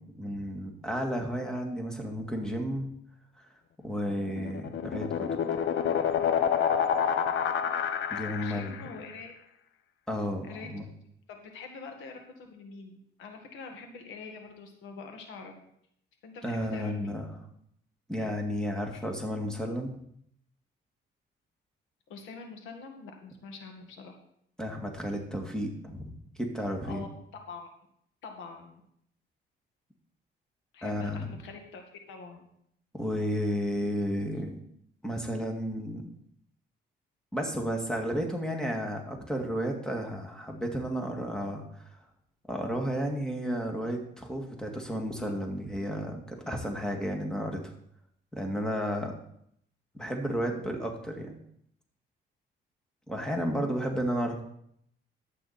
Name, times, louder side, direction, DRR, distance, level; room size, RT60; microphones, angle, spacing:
voice 1, 0.0-2.9 3.4-3.5 3.8-5.3 8.1-8.8 10.1-10.8 16.4-17.5 18.1-20.0 24.6-27.0 30.8-31.3 32.9-34.6 35.0-36.1 37.3-41.9 42.5-47.7 48.3-49.1 49.9-51.3 53.1-54.4, equal, 5° left, 2 dB, 2.2 m, -32 dB
sound 1, 4.1-8.9, left 8 dB, 70° left, 0.9 m, -28 dB
voice 2, 8.4-9.3 10.4-10.7 11.3-15.6 16.2-17.2 18.2-18.3 22.1-24.1 26.8-27.1 27.5-27.7 28.2-28.8 30.7-32.5, left 4 dB, 90° left, 4 dB, 1.9 m, -45 dB
11.5 x 8.4 x 4.4 m, 0.72 s
cardioid pair, 90°, 20 cm